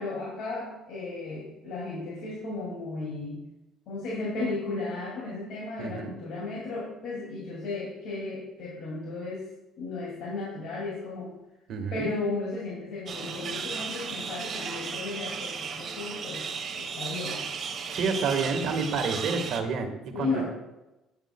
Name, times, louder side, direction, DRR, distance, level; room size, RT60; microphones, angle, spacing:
voice 1, 0.0-3.4 3.9-9.4 9.8-11.3 11.9-16.5 16.7-17.4 20.1-20.4, left 3 dB, 70° left, -5 dB, 2.4 m, -34 dB
voice 2, 5.8-6.1 11.7-12.1 17.9-20.4, right 5 dB, 65° right, 4 dB, 1.5 m, -29 dB
sound 1, 13.1-19.6, right 5 dB, 45° right, 1.0 m, -35 dB
9.6 x 8.9 x 2.2 m, 0.98 s
supercardioid pair, 85°, 0 cm